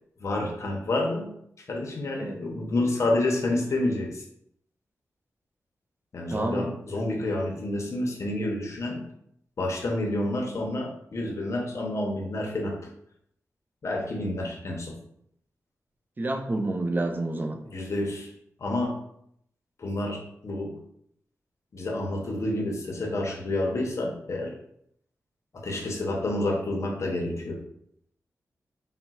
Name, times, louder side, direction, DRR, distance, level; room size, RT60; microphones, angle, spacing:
voice 1, 0.2-1.3 1.7-4.2 6.1-9.0 9.6-12.9 13.8-15.0 17.6-18.3 18.6-19.0 19.8-20.8 21.7-24.5 25.5-27.6, left 1 dB, 55° left, -1 dB, 0.6 m, -29 dB
voice 2, 6.3-6.7 16.2-17.6, right 2 dB, 30° right, 4 dB, 0.4 m, -29 dB
4.0 x 2.1 x 2.3 m, 0.71 s
wide cardioid pair, 85°, 6 cm